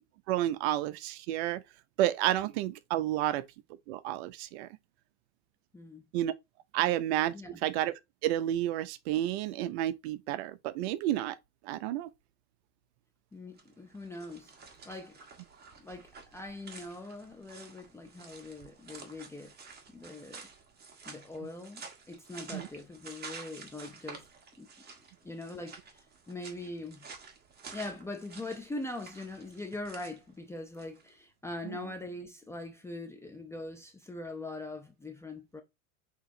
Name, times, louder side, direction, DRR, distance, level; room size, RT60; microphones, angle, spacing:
voice 1, 0.3-1.6 2.0-3.4 3.9-4.7 6.1-6.3 6.7-7.3 7.6-7.9 8.2-11.4 11.6-12.1 22.5-22.7 31.6-31.8, right 13 dB, 50° right, 0.5 m, -30 dB
voice 2, 13.3-14.5 14.9-15.2 15.8-19.5 19.9-20.5 21.1-24.3 24.6-24.7 25.2-27.1 27.7-35.6, left 2 dB, 5° left, 0.4 m, -42 dB
sound 1, 13.5-31.1, right 4 dB, 25° right, 1.2 m, -50 dB
6.0 x 2.9 x 2.6 m
hypercardioid pair, 100°, 42 cm